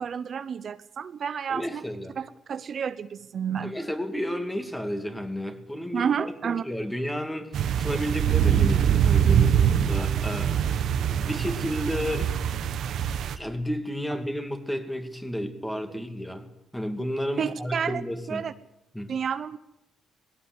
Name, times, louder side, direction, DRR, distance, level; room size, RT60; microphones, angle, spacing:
voice 1, 0.0-1.8 2.2-3.8 5.9-6.6 15.9-16.0 17.4-18.0 18.3-18.5 19.1-19.6, right 7 dB, 55° right, 0.8 m, -30 dB
voice 2, 1.5-2.2 3.6-12.4 13.4-18.4 18.9-19.1, equal, 5° left, 2.7 m, -32 dB
sound 1, 7.5-13.4, right 9 dB, 70° right, 1.3 m, -23 dB
19.0 x 17.0 x 8.2 m
cardioid pair, 90°, 0 cm